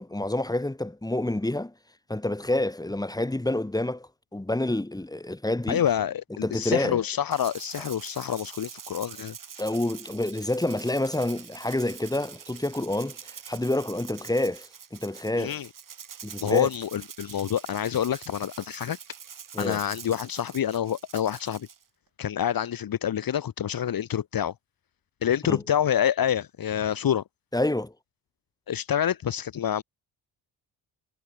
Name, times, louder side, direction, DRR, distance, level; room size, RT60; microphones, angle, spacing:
voice 1, 0.0-1.7 2.1-5.8 6.4-7.0 9.6-15.5 16.2-16.7 19.5-19.8 25.5-25.6 27.5-27.9, left 1 dB, 10° left, 5.4 m, -28 dB
voice 2, 5.7-9.3 15.4-15.7 16.4-19.0 19.6-21.7 22.2-24.5 25.2-27.2 28.7-29.8, left 9 dB, 55° left, 2.1 m, -27 dB
Rattle (instrument), 7.3-21.8, right 8 dB, 50° right, 4.6 m, -45 dB
cardioid pair, 90°, 42 cm